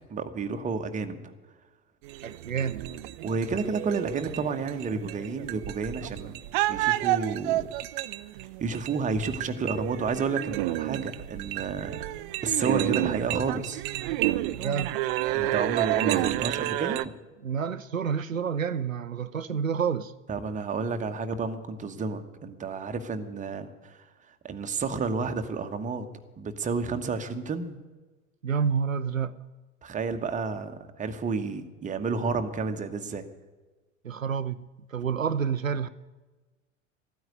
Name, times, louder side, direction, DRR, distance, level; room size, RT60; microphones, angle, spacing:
voice 1, 0.1-1.3 3.2-6.4 6.7-7.7 8.6-12.2 12.4-13.8 15.3-17.1 20.3-24.0 24.4-26.1 26.4-27.8 29.8-33.2, right 4 dB, 20° right, 1.2 m, -31 dB
sound 1, 2.0-17.0, right 16 dB, 40° right, 0.5 m, -30 dB
voice 2, 2.2-2.9 14.5-14.9 17.4-20.1 28.4-29.3 34.0-34.6 34.9-35.9, right 6 dB, 90° right, 0.5 m, -29 dB
14.0 x 9.3 x 9.2 m
figure-of-eight pair, 80°, 39 cm